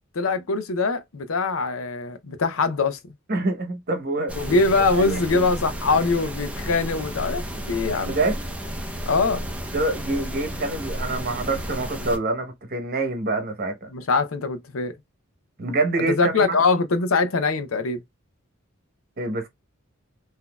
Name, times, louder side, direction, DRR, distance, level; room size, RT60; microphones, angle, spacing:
voice 1, 0.1-3.0 4.4-7.4 7.7-8.2 9.1-9.4 13.9-14.9 16.1-18.0, left 3 dB, 90° left, 0.6 m, -23 dB
voice 2, 3.3-4.6 4.9-5.4 8.0-8.4 9.7-13.9 15.6-16.6 19.2-19.5, right 2 dB, 50° right, 1.0 m, -26 dB
sound 1, 4.3-12.2, equal, 5° right, 0.6 m, -32 dB
3.9 x 2.7 x 2.2 m
head